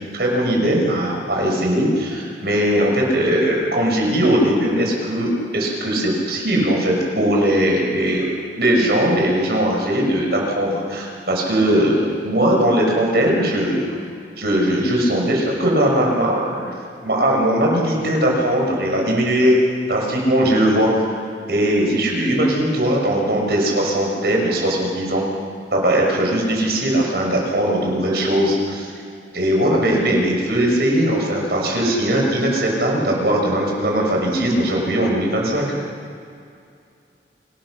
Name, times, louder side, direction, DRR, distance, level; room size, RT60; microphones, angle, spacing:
voice 1, 0.2-13.9 14.4-16.7 17.0-19.6 19.9-21.1 21.5-25.2 25.7-28.9 29.3-35.7, right 1 dB, 65° right, -1 dB, 6.3 m, -19 dB
26.5 x 19.5 x 6.5 m, 2.4 s
head